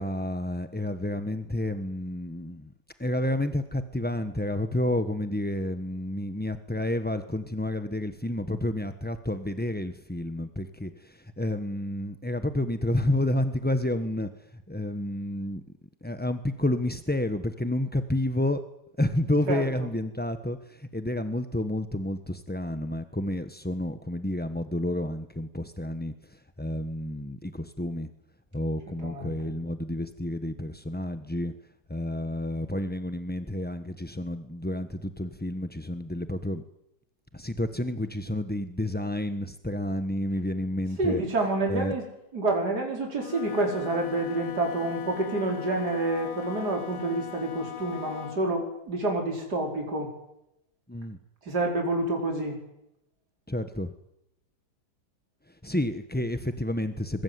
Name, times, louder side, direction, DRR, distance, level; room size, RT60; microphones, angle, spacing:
voice 1, 0.0-2.7 3.0-15.6 16.0-18.6 19.0-28.1 28.5-31.5 31.9-36.6 37.3-41.2 41.7-41.9 50.9-51.2 53.5-53.9 55.5-57.2, left 1 dB, 5° left, 9 dB, 0.7 m, -30 dB
voice 2, 29.0-29.5 41.0-42.1 42.3-50.1 51.4-52.6, right 2 dB, 50° right, 1 dB, 5.4 m, -28 dB
Wind instrument woodwind instrument, 43.1-48.5, left 10 dB, 85° left, 2.2 m, -40 dB
25.0 x 22.5 x 9.6 m, 0.83 s
omnidirectional pair, 2.3 m